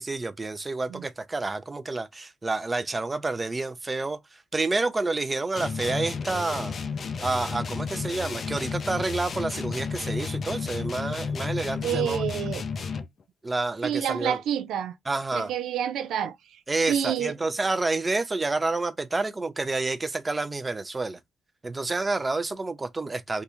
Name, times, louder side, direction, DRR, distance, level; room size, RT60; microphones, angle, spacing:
voice 1, 0.0-6.7 7.2-12.2 13.4-14.4 15.1-15.5 16.7-21.2 21.6-23.4, right 3 dB, 20° right, 0.5 m, -29 dB
sound 1, 5.6-13.2, left 5 dB, 45° left, 0.4 m, -32 dB
voice 2, 11.8-12.6 13.8-14.9 15.3-16.6 16.9-17.3, right 9 dB, 80° right, 0.3 m, -28 dB
3.5 x 2.5 x 2.8 m
cardioid pair, 90°, 0 cm